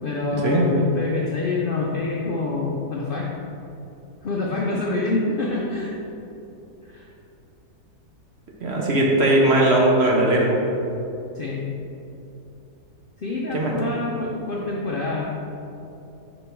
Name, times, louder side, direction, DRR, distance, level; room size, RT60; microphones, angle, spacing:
voice 1, 0.0-3.3 4.2-5.9 6.8-7.1 11.3-11.7 13.2-15.5, left 3 dB, 60° left, -3 dB, 0.5 m, -26 dB
voice 2, 8.6-10.5 13.5-13.7, right 1 dB, 55° right, -2 dB, 0.9 m, -18 dB
5.4 x 4.5 x 4.4 m, 2.8 s
omnidirectional pair, 1.6 m